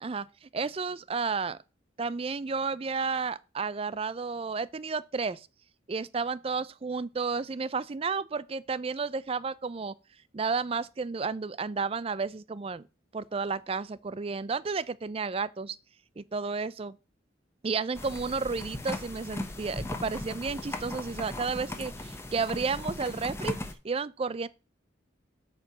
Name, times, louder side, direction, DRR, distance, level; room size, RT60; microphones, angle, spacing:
voice 1, 0.0-1.6 2.0-5.5 5.9-9.9 10.3-12.8 13.1-15.8 16.2-17.0 17.6-23.6 23.8-24.5, right 4 dB, 30° right, 0.4 m, -32 dB
sound 1, 17.9-23.7, left 1 dB, 15° left, 0.9 m, -37 dB
8.4 x 4.8 x 6.6 m
head